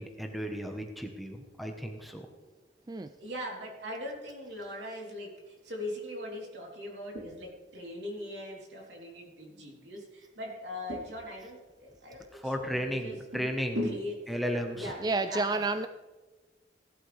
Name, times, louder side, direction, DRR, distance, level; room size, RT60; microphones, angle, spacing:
voice 1, 0.0-2.3 12.3-13.8 14.3-14.9, equal, ahead, 3 dB, 1.2 m, -34 dB
voice 2, 3.2-14.2 14.8-15.6, left 1 dB, 80° right, -1 dB, 3.5 m, -40 dB
voice 3, 15.0-15.9, right 3 dB, 20° right, 9 dB, 0.3 m, -29 dB
17.5 x 12.0 x 3.5 m, 1.2 s
head